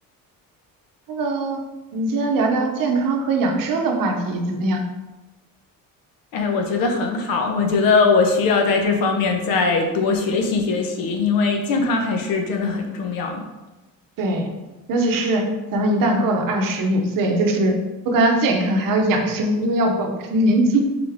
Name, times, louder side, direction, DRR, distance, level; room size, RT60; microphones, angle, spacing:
voice 1, 1.1-1.6 1.9-4.8 14.2-14.5 14.9-17.8 18.1-20.8, right 1 dB, 65° right, 3 dB, 0.7 m, -21 dB
voice 2, 6.3-13.4, left 4 dB, 75° left, 3 dB, 0.8 m, -20 dB
3.8 x 3.4 x 3.5 m, 1.1 s
cardioid pair, 165°, 35 cm